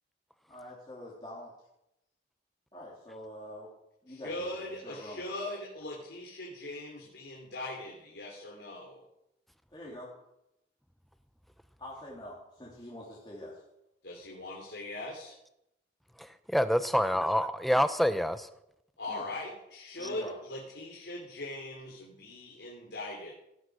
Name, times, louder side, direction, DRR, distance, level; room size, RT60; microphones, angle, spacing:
voice 1, 0.5-1.5 2.7-3.7 4.0-4.5 4.8-5.2 9.7-10.1 11.8-13.6 17.1-17.3 19.1-19.3 19.9-20.3, left 1 dB, 25° left, -6 dB, 3.7 m, -45 dB
voice 2, 4.1-9.0 14.0-15.3 19.0-23.3, left 1 dB, 80° left, -3 dB, 3.5 m, -40 dB
voice 3, 16.2-18.5, equal, ahead, 11 dB, 0.7 m, -27 dB
17.0 x 10.5 x 6.3 m, 0.84 s
head